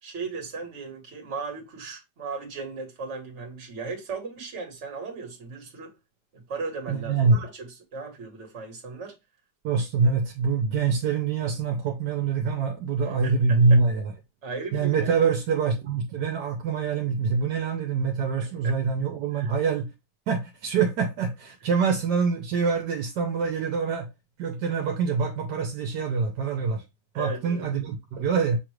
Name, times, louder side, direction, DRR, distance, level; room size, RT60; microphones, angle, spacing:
voice 1, 0.0-5.9 6.3-9.2 10.0-10.1 13.0-13.8 14.4-15.1 18.4-18.8 19.3-19.5 27.1-27.6, right 4 dB, 45° right, 1.5 m, -37 dB
voice 2, 6.9-7.4 9.6-14.1 14.7-19.9 20.3-24.1 24.4-26.8 27.1-28.6, right 5 dB, 70° right, 1.3 m, -25 dB
6.2 x 2.4 x 3.1 m
omnidirectional pair, 1.9 m